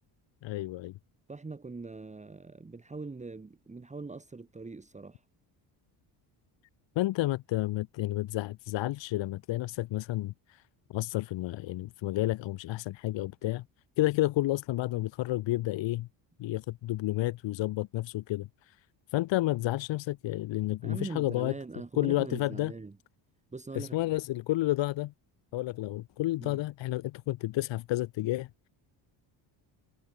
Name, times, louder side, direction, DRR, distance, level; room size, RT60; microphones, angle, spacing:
voice 1, 0.4-0.9 6.9-10.6 10.9-13.6 14.0-16.1 16.4-18.8 19.1-21.5 22.0-22.7 23.7-25.1 25.5-28.5, left 16 dB, 70° left, 1.5 m, -31 dB
voice 2, 1.3-5.2 20.8-23.0 23.5-24.0 26.4-26.6, right 3 dB, 15° right, 2.1 m, -42 dB
cardioid pair, 130°, 46 cm